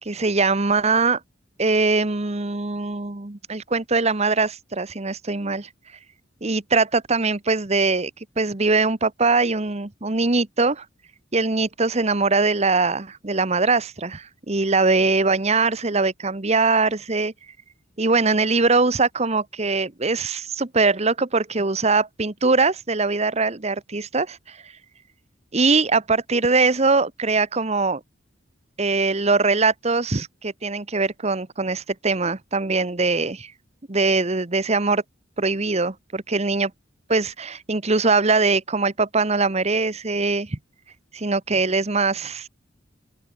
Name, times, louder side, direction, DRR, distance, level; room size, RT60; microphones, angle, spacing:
voice 1, 0.0-1.2 1.6-5.7 6.4-8.1 8.4-10.8 11.3-17.3 18.0-24.6 25.5-28.0 28.8-33.5 33.9-35.0 35.4-36.7 37.1-40.6 41.1-42.5, right 3 dB, 35° right, 1.2 m, -22 dB
open air
head